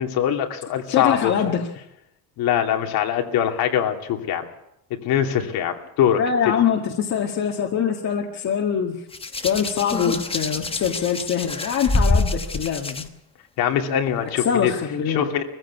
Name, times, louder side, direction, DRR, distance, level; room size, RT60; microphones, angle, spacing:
voice 1, 0.0-1.3 2.4-4.4 5.0-6.2 13.6-14.7 15.1-15.4, left 9 dB, 75° left, 4 dB, 2.7 m, -22 dB
voice 2, 0.9-1.7 6.2-9.0 9.4-13.0 14.5-15.3, left 7 dB, 45° left, 1 dB, 1.9 m, -23 dB
Hands, 9.1-13.0 14.1-14.3, left 2 dB, 15° left, 1.1 m, -25 dB
22.0 x 15.5 x 8.3 m, 0.81 s
cardioid pair, 155°, 37 cm